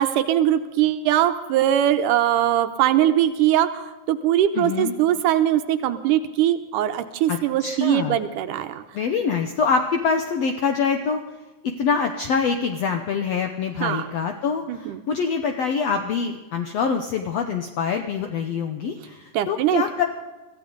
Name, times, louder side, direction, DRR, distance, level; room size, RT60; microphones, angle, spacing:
voice 1, 0.0-8.8 13.8-14.0 14.7-15.0 19.3-19.8, right 11 dB, 80° right, 9 dB, 2.1 m, -21 dB
voice 2, 4.5-4.9 7.3-8.2 8.9-11.2 11.6-20.0, left 5 dB, 75° left, 5 dB, 1.5 m, -25 dB
23.0 x 15.0 x 3.9 m, 1.2 s
omnidirectional pair, 4.0 m